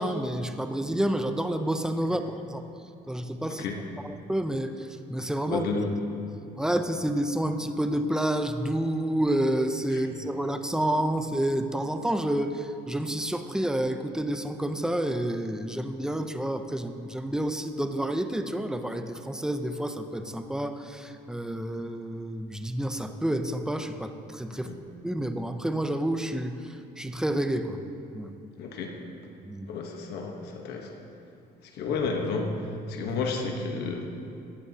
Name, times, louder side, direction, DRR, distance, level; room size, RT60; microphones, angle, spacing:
voice 1, 0.0-2.6 3.1-3.6 4.0-5.7 6.6-24.7 25.0-27.8 28.1-28.4 29.4-29.7, right 1 dB, 5° right, 7 dB, 0.6 m, -29 dB
voice 2, 5.5-5.9 9.9-10.1 24.5-24.8 28.6-28.9 29.7-31.0 31.7-32.5 32.9-34.1, left 4 dB, 75° left, 2 dB, 1.2 m, -31 dB
17.0 x 10.5 x 2.9 m, 2.7 s
cardioid pair, 110°, 17 cm